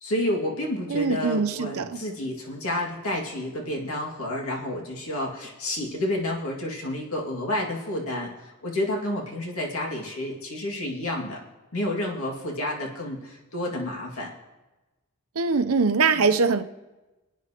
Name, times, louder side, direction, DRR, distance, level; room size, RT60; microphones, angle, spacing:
voice 1, 0.0-11.4 11.7-14.3 16.2-16.3, left 1 dB, 80° left, -1 dB, 2.2 m, -30 dB
voice 2, 0.9-2.0 15.4-16.6, right 4 dB, 85° right, 9 dB, 0.7 m, -22 dB
27.0 x 9.2 x 2.9 m, 1.1 s
head